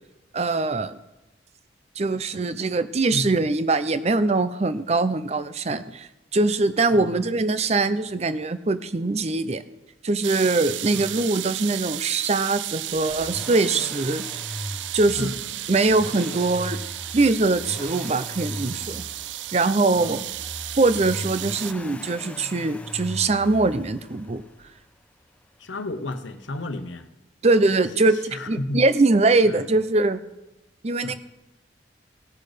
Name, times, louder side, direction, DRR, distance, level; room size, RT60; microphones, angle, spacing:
voice 1, 0.3-1.0 2.0-9.6 10.0-14.3 14.9-15.3 15.7-16.8 17.1-19.0 19.5-20.2 20.8-24.4 27.4-30.2 30.8-31.1, right 3 dB, 35° right, 12 dB, 0.6 m, -22 dB
voice 2, 6.9-7.2 10.9-11.1 15.2-15.8 19.9-20.3 25.6-27.1 27.9-28.8 29.4-29.7 31.0-31.1, left 2 dB, 90° left, 9 dB, 0.9 m, -33 dB
sound 1, 10.2-21.7, right 14 dB, 80° right, 0.4 m, -34 dB
Accelerating revving vroom, 12.9-24.8 26.1-26.2, left 1 dB, 5° left, 0.6 m, -39 dB
17.5 x 6.4 x 5.0 m, 0.98 s
head